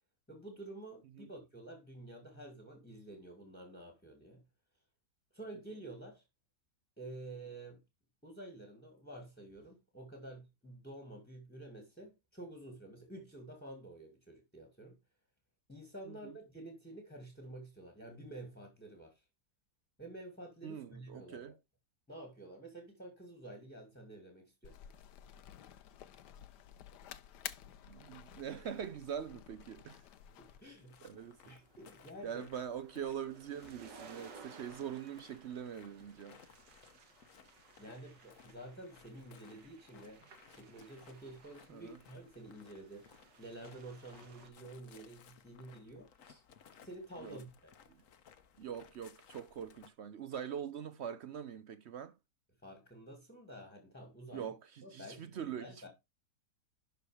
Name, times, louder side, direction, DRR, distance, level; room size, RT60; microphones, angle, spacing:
voice 1, 0.3-4.4 5.3-6.2 7.0-7.8 8.2-15.0 15.7-19.3 20.0-21.5 22.1-24.8 30.4-31.0 31.5-32.4 37.8-46.4 46.8-47.7 52.6-54.5 54.8-55.9, right 1 dB, 5° left, 2.0 m, -50 dB
voice 2, 20.6-21.5 27.8-30.0 31.0-31.5 32.2-36.4 41.7-42.0 47.2-47.4 48.6-52.1 54.3-55.9, right 8 dB, 65° right, 0.6 m, -43 dB
sound 1, 24.6-30.6, left 10 dB, 75° left, 1.3 m, -51 dB
sound 2, 30.3-44.5, right 5 dB, 85° right, 2.1 m, -59 dB
sound 3, 30.6-49.9, left 7 dB, 55° left, 1.2 m, -62 dB
11.5 x 4.6 x 4.9 m
omnidirectional pair, 1.8 m